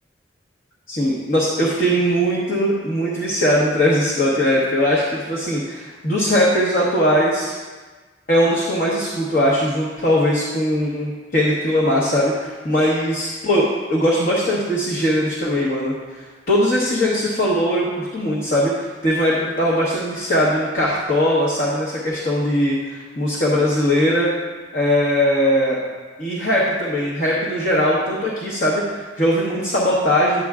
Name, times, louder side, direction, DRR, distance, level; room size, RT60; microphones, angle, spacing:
voice 1, 0.9-7.5 8.3-24.3 24.7-25.8 26.2-30.4, equal, 50° left, -5 dB, 1.1 m, -20 dB
9.9 x 7.6 x 2.4 m, 1.4 s
head